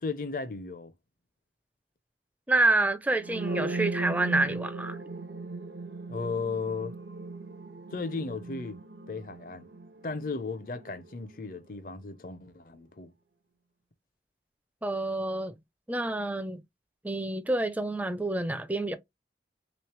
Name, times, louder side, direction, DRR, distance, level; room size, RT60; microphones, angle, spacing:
voice 1, 0.0-0.9 6.1-6.9 7.9-8.8 9.1-9.7 10.0-13.1, left 4 dB, 50° left, 0.6 m, -35 dB
voice 2, 2.5-5.0 14.8-15.5 15.9-16.6 17.0-19.0, right 2 dB, 10° right, 0.4 m, -28 dB
sound 1, 3.2-11.0, right 3 dB, 75° right, 0.7 m, -36 dB
3.2 x 3.1 x 3.1 m
head